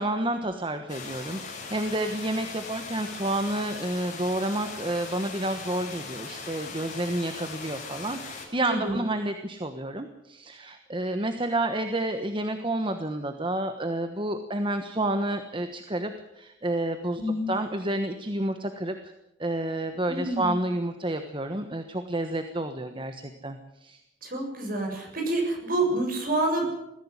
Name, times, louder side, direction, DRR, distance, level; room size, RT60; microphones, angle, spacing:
voice 1, 0.0-19.1 19.4-24.0, right 1 dB, 25° right, 7 dB, 1.3 m, -30 dB
sound 1, 0.9-8.5, left 4 dB, 40° left, 7.1 m, -39 dB
voice 2, 17.2-17.5 20.1-20.5 24.2-26.7, right 2 dB, 45° right, 2 dB, 7.4 m, -27 dB
21.5 x 15.5 x 9.8 m, 0.90 s
head